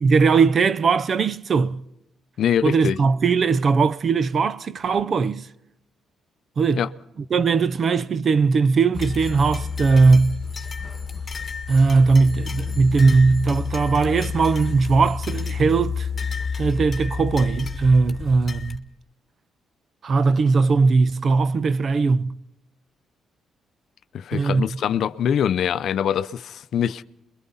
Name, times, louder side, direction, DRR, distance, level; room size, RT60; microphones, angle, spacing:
voice 1, 0.0-1.8 2.6-5.5 6.6-6.9 7.3-10.4 11.7-16.1 16.5-18.8 20.0-22.3 24.3-24.6, right 4 dB, 50° right, 0.6 m, -19 dB
voice 2, 2.4-3.0 6.8-6.9 24.1-27.0, left 9 dB, 65° left, 0.6 m, -23 dB
sound 1, 8.9-18.8, left 5 dB, 30° left, 1.6 m, -30 dB
28.0 x 22.5 x 4.1 m
cardioid pair, 90°, 0 cm